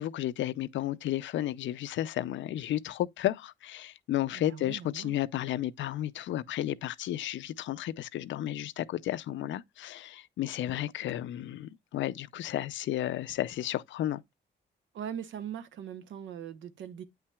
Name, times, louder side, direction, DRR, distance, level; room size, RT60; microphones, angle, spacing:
voice 1, 0.0-14.2, left 13 dB, 80° left, 0.5 m, -33 dB
voice 2, 4.3-5.2 14.9-17.0, right 9 dB, 85° right, 0.9 m, -40 dB
8.8 x 5.7 x 2.2 m
cardioid pair, 140°, 19 cm